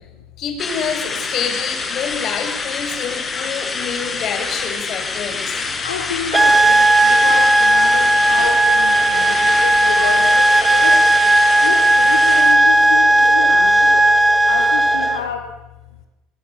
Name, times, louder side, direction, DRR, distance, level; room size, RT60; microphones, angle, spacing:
voice 1, 0.4-5.6, left 7 dB, 50° left, 6 dB, 7.4 m, -27 dB
sound 1, 0.6-12.5, left 4 dB, 30° left, 6.2 m, -27 dB
voice 2, 3.1-4.7 5.0-11.0 11.6-14.1 14.5-15.5, left 7 dB, 85° left, 6 dB, 2.4 m, -30 dB
sound 2, 6.3-15.3, right 1 dB, 15° right, 2.4 m, -14 dB
28.0 x 22.5 x 8.5 m, 0.98 s
hypercardioid pair, 70°, 0 cm